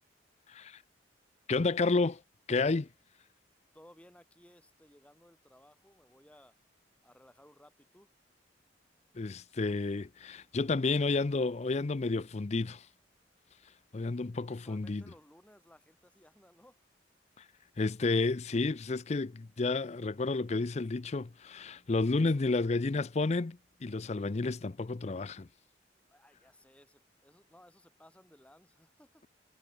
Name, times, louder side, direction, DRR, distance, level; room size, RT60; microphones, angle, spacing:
voice 1, 0.5-0.8 1.5-2.2 2.5-2.9 9.2-12.9 13.9-15.0 17.8-25.5, left 3 dB, 35° left, 0.5 m, -31 dB
voice 2, 3.7-6.6 7.0-8.1 14.5-16.8 26.1-29.3, left 1 dB, 5° left, 4.0 m, -60 dB
head